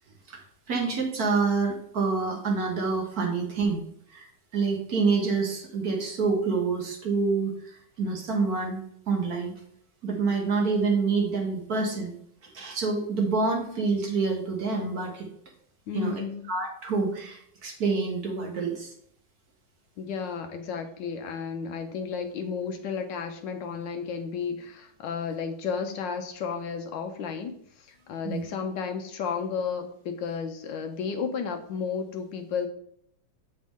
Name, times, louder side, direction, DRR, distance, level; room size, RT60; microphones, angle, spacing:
voice 1, 0.7-3.8 4.1-8.8 9.1-9.5 10.0-12.1 12.4-15.3 15.9-18.9 28.2-28.4, right 4 dB, 55° right, 1 dB, 1.3 m, -27 dB
voice 2, 15.9-16.4 20.0-32.7, left 6 dB, 75° left, 6 dB, 1.2 m, -33 dB
7.5 x 4.2 x 3.5 m, 0.69 s
omnidirectional pair, 2.2 m